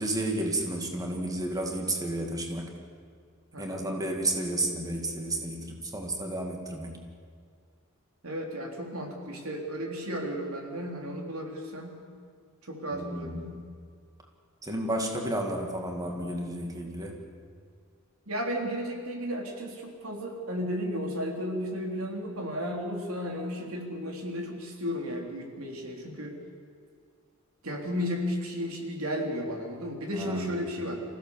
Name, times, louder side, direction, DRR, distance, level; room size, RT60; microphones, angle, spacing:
voice 1, 0.0-2.7 3.6-7.0 12.9-13.7 14.6-17.2 30.2-30.7, right 1 dB, 15° right, 2 dB, 2.3 m, -32 dB
voice 2, 3.5-3.9 8.2-12.0 12.6-13.3 18.3-26.4 27.6-31.0, equal, 85° right, 1 dB, 3.5 m, -34 dB
26.0 x 16.0 x 7.2 m, 2.1 s
head